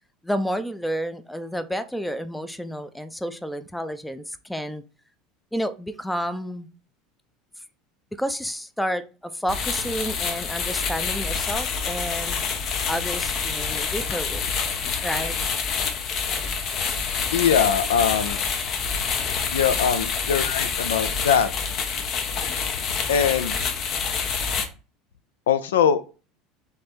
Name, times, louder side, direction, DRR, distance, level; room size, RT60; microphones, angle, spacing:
voice 1, 0.2-4.8 5.5-6.7 8.2-12.4 12.9-14.5 15.0-15.4, equal, 5° left, 0.5 m, -30 dB
sound 1, 9.5-24.7, left 6 dB, 50° left, 0.7 m, -27 dB
voice 2, 17.3-18.4 19.5-21.5 23.1-23.6 25.5-26.0, left 7 dB, 80° left, 0.3 m, -21 dB
3.3 x 3.2 x 4.2 m
hypercardioid pair, 75°, 0 cm